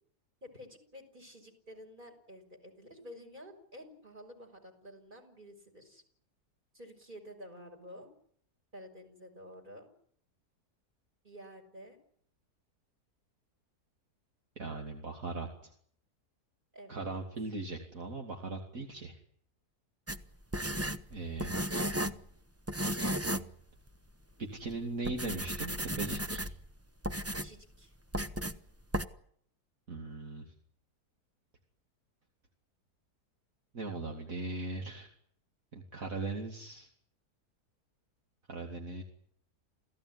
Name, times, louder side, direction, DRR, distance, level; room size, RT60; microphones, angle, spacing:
voice 1, 0.4-6.0 6.7-8.1 8.7-9.9 11.2-12.0 16.7-17.2 27.3-27.9, equal, 30° right, 4 dB, 6.2 m, -51 dB
voice 2, 14.6-15.7 16.9-19.2 21.1-21.5 24.4-26.4 29.9-30.4 33.7-35.1 35.7-36.9 38.5-39.0, right 3 dB, 55° right, 2 dB, 3.1 m, -39 dB
sound 1, 20.1-22.3 22.7-23.5 23.9-24.0 24.6-24.7 25.0-26.7 27.0-27.6 28.1-28.6 28.9-29.1, equal, 10° right, 0.8 m, -34 dB
29.0 x 16.5 x 9.8 m, 0.64 s
omnidirectional pair, 1.7 m